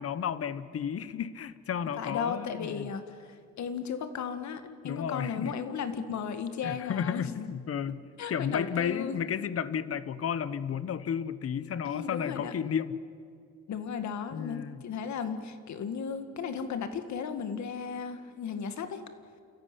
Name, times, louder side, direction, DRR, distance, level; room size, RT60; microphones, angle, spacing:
voice 1, 0.0-2.9 4.8-5.5 6.6-8.0 8.3-13.0 14.3-14.8, left 8 dB, 50° left, 15 dB, 1.1 m, -33 dB
voice 2, 2.0-3.3 3.6-7.4 8.2-9.2 11.8-12.5 13.7-19.0, left 6 dB, 65° left, 9 dB, 1.9 m, -35 dB
29.5 x 14.0 x 9.9 m, 2.4 s
cardioid pair, 90°, 30 cm